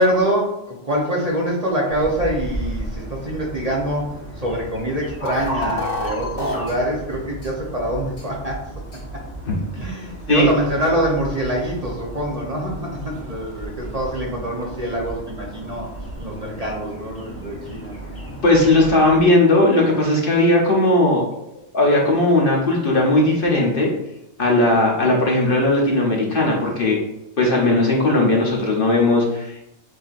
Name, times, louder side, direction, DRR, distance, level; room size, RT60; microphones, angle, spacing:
voice 1, 0.0-8.6 9.8-15.9 16.2-17.9, equal, 35° right, -3 dB, 0.8 m, -24 dB
sound 1, 1.9-19.3, right 1 dB, 15° left, 0.9 m, -35 dB
sound 2, 5.2-6.7 7.4-7.5 8.2-8.3 8.9-9.0, left 1 dB, 90° left, 2.4 m, -27 dB
voice 2, 18.4-21.3 21.7-23.9 24.4-27.0 27.4-29.6, left 2 dB, 50° left, -2 dB, 1.0 m, -17 dB
7.5 x 2.8 x 2.5 m, 0.87 s
omnidirectional pair, 1.3 m